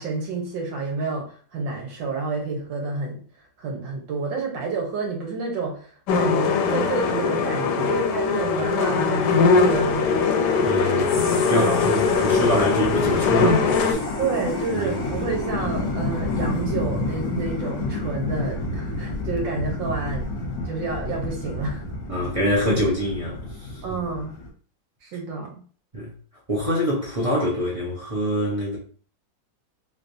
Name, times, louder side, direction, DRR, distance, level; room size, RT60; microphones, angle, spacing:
voice 1, 0.0-3.2 3.6-10.4 14.2-20.3 20.7-21.8 23.8-24.3 25.0-25.6, right 4 dB, 80° right, 1.7 m, -29 dB
sound 1, 6.1-13.9, left 5 dB, 75° left, 1.1 m, -21 dB
sound 2, 8.1-24.5, left 2 dB, 50° left, 1.0 m, -30 dB
voice 2, 10.6-14.0 14.7-14.9 22.1-23.5 25.9-26.1 26.5-28.8, equal, 35° right, 0.6 m, -25 dB
3.8 x 3.2 x 2.6 m
omnidirectional pair, 2.0 m